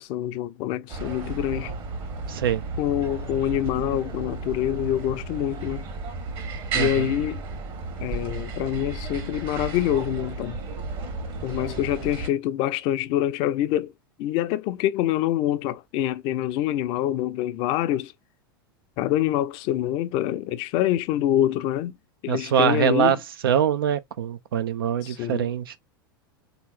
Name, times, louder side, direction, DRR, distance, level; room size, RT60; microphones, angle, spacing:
voice 1, 0.0-1.7 2.8-5.9 6.7-7.4 8.0-10.6 11.4-13.9 14.2-18.1 19.0-22.0 22.2-23.2 25.0-25.5, left 12 dB, 45° left, 0.5 m, -26 dB
sound 1, 0.9-12.3, right 3 dB, 40° right, 1.3 m, -33 dB
voice 2, 2.3-2.6 6.7-7.1 22.3-23.2 23.4-25.8, right 9 dB, 70° right, 0.6 m, -23 dB
3.7 x 2.9 x 2.4 m
figure-of-eight pair, 90°, 12 cm